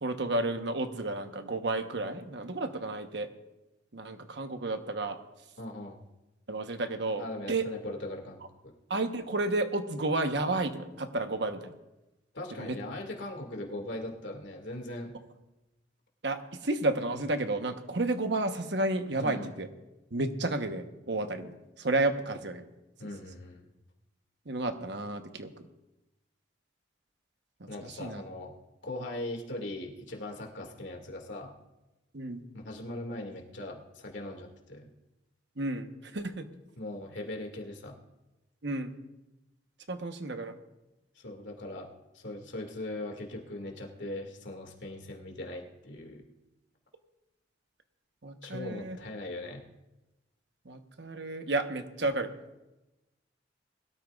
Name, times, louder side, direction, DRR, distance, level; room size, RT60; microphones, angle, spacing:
voice 1, 0.0-3.3 3.9-5.2 6.5-7.7 8.9-11.7 12.6-12.8 16.2-19.7 20.1-22.7 24.5-25.5 27.6-28.2 32.1-32.4 35.6-35.9 36.1-36.5 38.6-38.9 39.9-40.5 48.2-49.0 50.6-52.3, right 2 dB, 65° right, 7 dB, 1.1 m, -31 dB
voice 2, 5.6-6.0 7.2-8.7 12.3-15.2 19.2-19.5 23.0-23.7 27.7-28.5 28.8-31.5 32.5-34.9 36.8-37.9 41.2-41.9 42.1-46.3 48.4-49.6, left 1 dB, 80° left, 2 dB, 2.2 m, -40 dB
21.5 x 13.0 x 2.4 m, 1.0 s
head